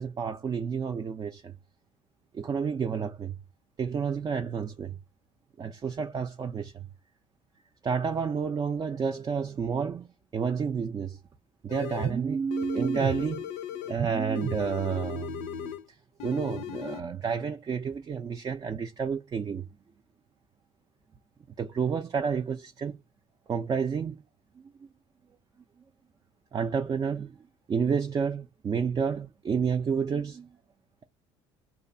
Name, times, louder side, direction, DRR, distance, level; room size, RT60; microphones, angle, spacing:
voice 1, 0.0-1.5 2.3-3.4 3.8-5.0 5.6-6.9 7.8-10.1 10.3-11.2 11.6-13.5 13.9-15.7 16.2-19.6 21.6-23.0 23.5-24.2 26.5-27.4 27.7-30.5, right 6 dB, 30° right, 0.4 m, -30 dB
sound 1, 11.7-12.2 12.5-14.0 14.3-15.9 16.2-17.0, left 11 dB, 80° left, 0.4 m, -38 dB
2.8 x 2.2 x 2.6 m
supercardioid pair, 75°, 13 cm